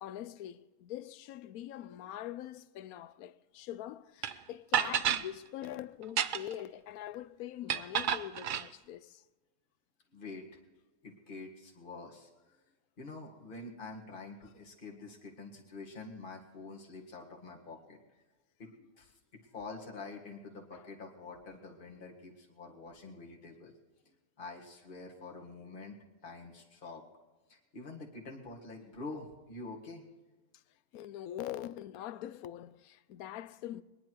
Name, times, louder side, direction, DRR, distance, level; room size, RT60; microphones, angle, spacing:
voice 1, 0.0-9.2 20.7-20.8 30.9-33.8, left 12 dB, 85° left, 1.1 m, -43 dB
sound 1, 4.2-4.3 4.7-5.3 6.0-6.6 7.7-8.7, right 9 dB, 70° right, 0.4 m, -30 dB
voice 2, 10.1-10.4 11.0-12.3 13.0-18.0 18.6-19.2 19.5-23.7 24.1-27.0 27.5-30.1, left 3 dB, 35° left, 2.0 m, -47 dB
22.0 x 10.5 x 4.6 m
omnidirectional pair, 1.5 m